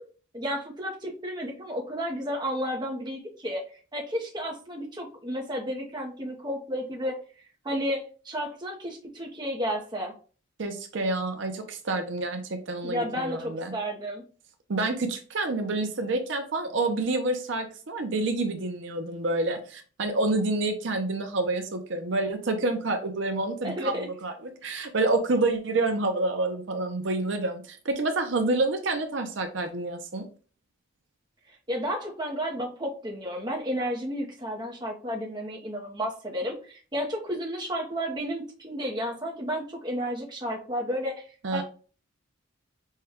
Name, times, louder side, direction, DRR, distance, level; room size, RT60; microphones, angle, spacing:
voice 1, 0.3-3.6 3.9-7.2 7.6-10.1 12.8-14.2 23.6-24.1 31.5-41.2 41.5-41.6, equal, 20° right, 0 dB, 0.7 m, -32 dB
voice 2, 10.6-13.7 14.7-30.2 41.4-41.6, right 2 dB, 60° right, 5 dB, 0.6 m, -28 dB
5.4 x 2.2 x 3.5 m, 0.39 s
head